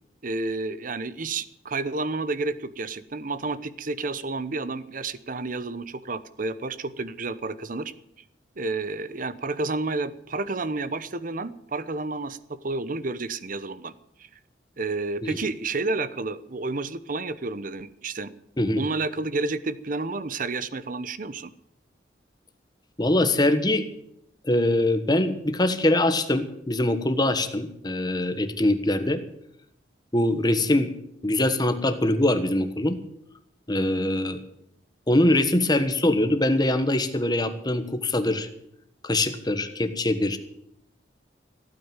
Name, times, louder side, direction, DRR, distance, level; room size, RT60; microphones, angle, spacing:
voice 1, 0.2-7.9 8.6-13.9 14.2-14.3 14.8-18.3 18.8-21.5, right 3 dB, 50° right, 15 dB, 0.8 m, -30 dB
voice 2, 23.0-23.9 24.4-29.2 30.1-30.9 31.2-33.0 33.7-34.4 35.1-38.5 39.0-40.4, left 1 dB, 25° left, 9 dB, 1.3 m, -23 dB
15.0 x 9.3 x 9.0 m, 0.76 s
head